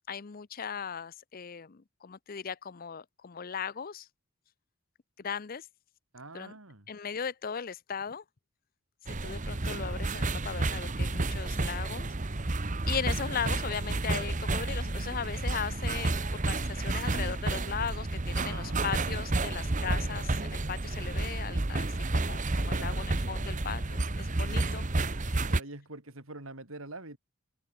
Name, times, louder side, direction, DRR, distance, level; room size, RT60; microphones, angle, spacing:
voice 1, 0.1-4.1 5.2-5.7 6.3-6.5 6.9-8.2 9.2-12.1 12.9-24.8, left 7 dB, 40° left, 0.5 m, -37 dB
voice 2, 6.1-6.9 18.3-19.9 22.7-23.1 24.4-24.6 25.5-27.2, right 2 dB, 70° right, 3.8 m, -46 dB
sound 1, 9.1-25.6, right 2 dB, 35° right, 1.1 m, -31 dB
head